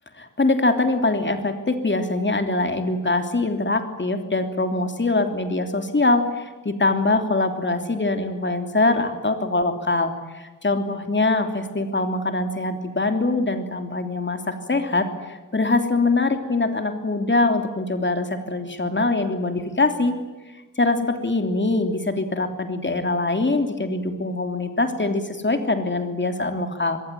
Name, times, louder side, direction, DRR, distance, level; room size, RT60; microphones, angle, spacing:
voice 1, 0.2-20.1 20.8-27.0, left 2 dB, 35° left, 7 dB, 3.1 m, -23 dB
26.5 x 21.0 x 9.3 m, 1.2 s
wide cardioid pair, 105°, 31 cm